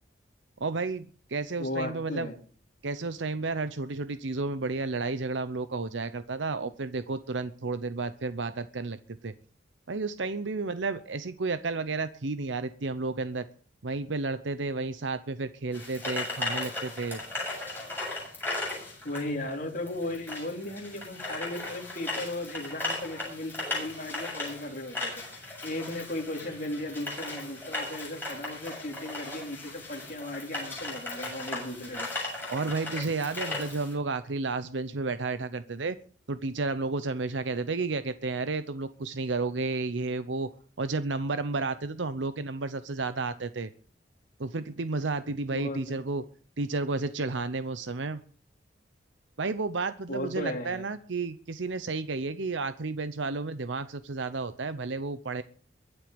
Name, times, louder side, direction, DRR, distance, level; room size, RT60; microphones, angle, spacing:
voice 1, 0.6-2.3 2.8-9.3 9.9-13.5 13.8-17.2 32.5-36.0 36.3-40.5 40.8-43.7 44.4-46.2 46.6-48.2 49.4-55.4, right 3 dB, 85° right, 12 dB, 0.8 m, -32 dB
voice 2, 1.6-2.3 19.0-25.1 25.6-32.1 45.5-46.0 50.1-50.8, left 1 dB, 45° left, 1 dB, 3.8 m, -36 dB
sound 1, 15.7-33.9, left 2 dB, 10° left, 7.9 m, -37 dB
23.0 x 8.2 x 5.2 m, 0.42 s
head